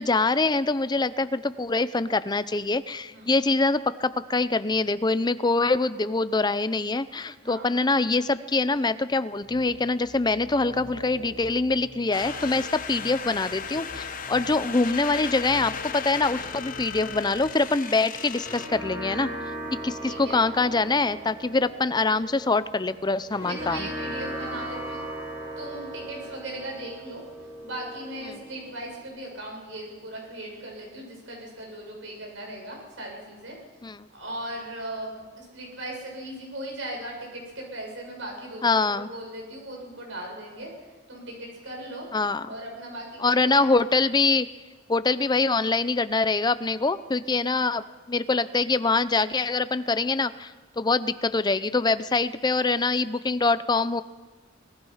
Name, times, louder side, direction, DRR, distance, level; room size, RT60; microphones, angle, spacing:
voice 1, 0.0-19.3 19.8-23.9 33.8-34.0 38.6-39.1 42.1-42.5 43.2-44.5 44.9-50.5 50.8-54.0, left 3 dB, 20° left, 14 dB, 0.6 m, -24 dB
voice 2, 7.4-7.7 14.3-14.7 20.1-20.4 23.4-25.0 25.6-27.2 27.6-33.6 34.1-40.7 41.1-42.1 42.4-43.7 47.5-47.7, right 1 dB, 65° right, 0 dB, 7.3 m, -38 dB
sound 1, 9.5-17.6, left 2 dB, 90° right, 6.8 m, -45 dB
sound 2, 12.1-18.7, left 7 dB, 45° left, 1.1 m, -36 dB
sound 3, 18.1-29.1, right 1 dB, 15° right, 6.4 m, -38 dB
24.5 x 19.0 x 5.7 m, 1.3 s
head